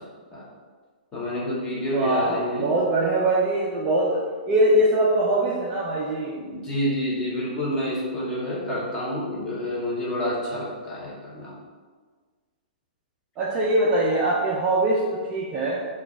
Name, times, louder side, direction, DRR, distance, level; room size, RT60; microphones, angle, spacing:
voice 1, 1.1-2.8 6.3-11.5, equal, 15° left, -5 dB, 0.7 m, -28 dB
voice 2, 1.9-6.3 13.4-15.8, right 1 dB, 20° right, -5 dB, 0.3 m, -22 dB
3.0 x 2.2 x 3.4 m, 1.5 s
hypercardioid pair, 165°, 5 cm